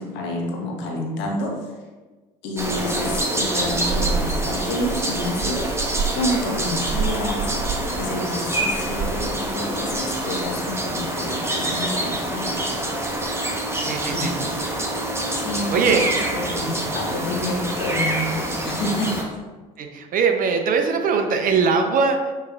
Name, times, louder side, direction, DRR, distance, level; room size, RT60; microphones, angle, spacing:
voice 1, 0.0-1.8 2.4-12.6 14.1-14.5 15.3-19.3, left 1 dB, 60° left, 1 dB, 1.1 m, -29 dB
sound 1, 2.6-19.2, right 2 dB, 15° right, 0.9 m, -26 dB
voice 2, 13.8-14.3 15.7-16.0 19.8-22.2, right 5 dB, 45° right, 5 dB, 0.6 m, -21 dB
sound 2, 15.7-17.1, right 1 dB, 65° right, 1.2 m, -37 dB
6.7 x 3.3 x 2.4 m, 1.2 s
hypercardioid pair, 65°, 21 cm